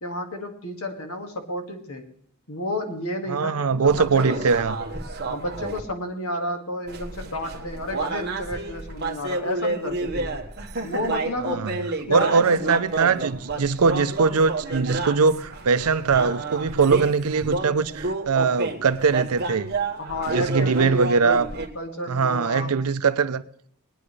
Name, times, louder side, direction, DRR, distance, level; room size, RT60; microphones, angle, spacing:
voice 1, 0.0-2.1 2.5-4.4 5.3-10.4 10.8-13.2 20.0-21.4 21.8-22.8, left 1 dB, 70° left, 1.9 m, -31 dB
voice 2, 3.3-4.7 11.4-11.7 12.1-19.7 20.3-21.5 22.1-23.4, right 5 dB, 80° right, 0.6 m, -21 dB
sound 1, 3.9-5.8 6.9-21.7, right 3 dB, 50° right, 1.4 m, -30 dB
21.5 x 9.7 x 3.3 m
head